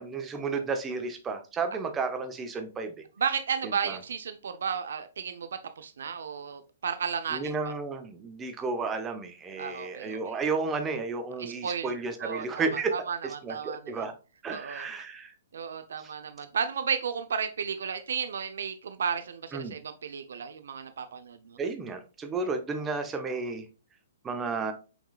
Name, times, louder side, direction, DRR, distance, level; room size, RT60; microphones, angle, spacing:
voice 1, 0.0-2.9 3.6-4.0 7.3-13.0 13.2-14.1 14.4-15.3 16.0-16.1 19.5-19.8 21.6-23.6 24.2-24.7, right 4 dB, 15° right, 0.9 m, -32 dB
voice 2, 3.2-7.5 9.6-10.4 11.4-11.9 12.2-14.0 14.5-14.9 15.5-21.6, right 6 dB, 75° right, 0.7 m, -33 dB
6.0 x 3.7 x 2.4 m
hypercardioid pair, 150°, 0 cm